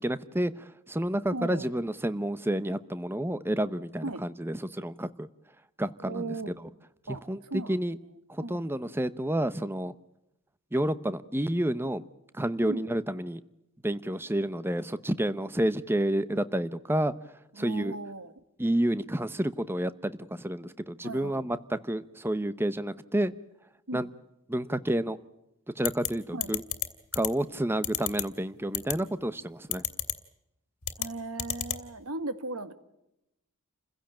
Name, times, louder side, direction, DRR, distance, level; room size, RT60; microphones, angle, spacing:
voice 1, 0.0-5.3 5.8-6.7 7.3-8.0 8.3-9.9 10.7-12.0 12.3-13.4 13.8-17.1 17.6-18.0 18.6-23.3 23.9-24.1 24.5-25.2 25.8-26.6 27.1-29.8, right 1 dB, 10° right, 14 dB, 0.8 m, -30 dB
voice 2, 1.3-1.7 4.0-4.2 6.1-6.5 7.1-7.8 8.4-8.6 12.6-12.8 17.6-18.3 21.0-21.4 23.9-24.1 26.3-26.5 31.0-32.7, right 2 dB, 80° right, 11 dB, 1.8 m, -37 dB
sound 1, 25.8-26.1 26.4-26.9 27.1-27.3 27.8-28.2 28.7-28.9 29.7-30.1 30.8-31.1 31.4-31.8, left 12 dB, 70° left, 2.4 m, -29 dB
29.0 x 16.0 x 8.8 m, 0.89 s
head